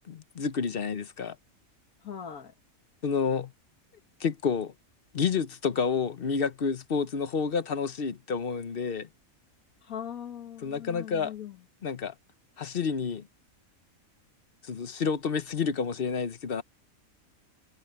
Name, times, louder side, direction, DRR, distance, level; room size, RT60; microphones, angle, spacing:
voice 1, 0.1-1.4 3.0-3.5 4.2-4.7 5.1-9.1 10.6-11.3 11.8-12.1 12.6-13.3 14.6-16.6, left 6 dB, 45° left, 1.0 m, -29 dB
voice 2, 2.0-2.5 9.8-11.6, left 9 dB, 80° left, 2.0 m, -40 dB
omnidirectional pair, 1.5 m